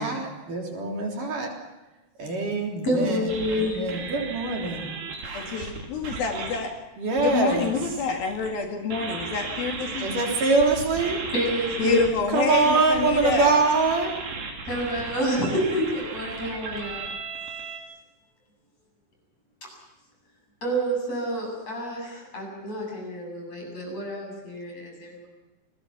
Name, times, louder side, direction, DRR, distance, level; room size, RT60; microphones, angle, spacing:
voice 1, 0.0-1.5 2.2-3.2 3.5-4.9 7.0-7.7 10.0-11.2 12.3-14.1, right 3 dB, 55° right, 0 dB, 5.0 m, -24 dB
voice 2, 2.8-3.8 11.3-12.1 14.7-17.2 20.6-25.3, equal, 40° left, 0 dB, 9.1 m, -28 dB
sound 1, 3.3-6.6 7.2-8.5 8.9-17.8, right 4 dB, 85° right, 5.6 m, -35 dB
voice 3, 5.3-6.7 7.2-10.1 11.8-13.5, left 5 dB, 65° left, 2 dB, 3.8 m, -27 dB
29.5 x 21.5 x 5.9 m, 1.0 s
omnidirectional pair, 4.7 m